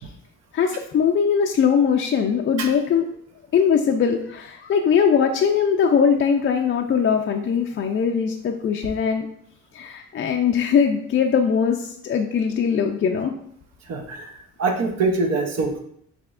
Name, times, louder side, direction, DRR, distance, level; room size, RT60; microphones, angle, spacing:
voice 1, 0.5-3.0 3.5-9.3 9.7-13.3, left 7 dB, 40° left, 3 dB, 0.4 m, -21 dB
voice 2, 13.9-14.3 14.6-15.8, right 3 dB, 60° right, 3 dB, 0.8 m, -23 dB
5.8 x 3.4 x 2.4 m, 0.67 s
cardioid pair, 90°, 30 cm